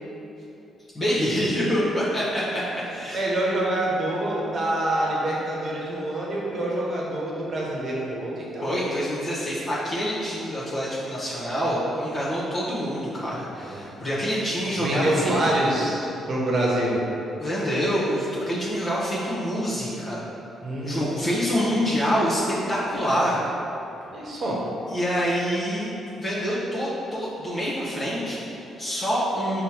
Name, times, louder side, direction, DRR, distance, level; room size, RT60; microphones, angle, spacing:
voice 1, 0.9-3.2 8.6-15.6 17.4-20.2 20.8-22.4 22.7-23.4 24.9-25.9 26.2-29.6, equal, 35° left, -9 dB, 1.0 m, -26 dB
voice 2, 3.1-8.8 13.6-13.8 14.8-17.0 20.6-21.0 24.0-24.6, right 1 dB, 45° right, -4 dB, 1.0 m, -26 dB
5.4 x 2.2 x 4.4 m, 2.8 s
cardioid pair, 90°, 0 cm